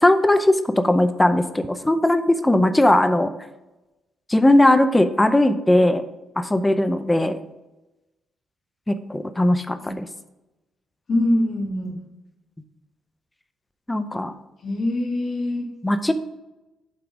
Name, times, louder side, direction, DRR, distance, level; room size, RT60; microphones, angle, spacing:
voice 1, 0.0-3.3 4.3-6.0 6.4-7.3 8.9-10.1 13.9-14.3 15.8-16.1, left 1 dB, 10° left, 10 dB, 0.6 m, -18 dB
voice 2, 11.1-12.0 14.6-15.7, left 1 dB, 50° left, -1 dB, 1.7 m, -23 dB
7.9 x 3.8 x 4.9 m, 1.0 s
cardioid pair, 90°, 0 cm